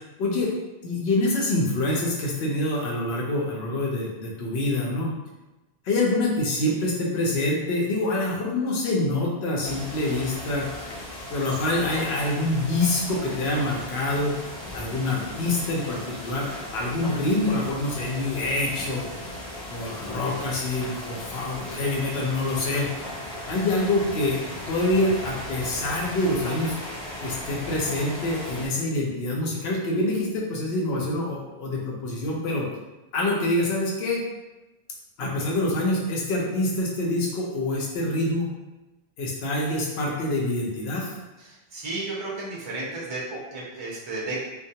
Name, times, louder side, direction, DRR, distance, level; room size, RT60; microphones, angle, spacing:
voice 1, 0.2-0.5 0.8-5.1 5.8-10.7 11.3-14.4 14.7-19.1 19.7-22.9 23.5-24.4 24.7-26.8 27.2-32.7 33.1-34.2 35.2-38.5 39.2-41.1, left 2 dB, 75° left, -3 dB, 0.9 m, -26 dB
sound 1, 9.6-28.7, left 1 dB, 40° left, 0.9 m, -37 dB
voice 2, 41.4-44.4, right 2 dB, 40° right, -6 dB, 0.4 m, -33 dB
2.3 x 2.2 x 2.7 m, 1.1 s
omnidirectional pair, 1.1 m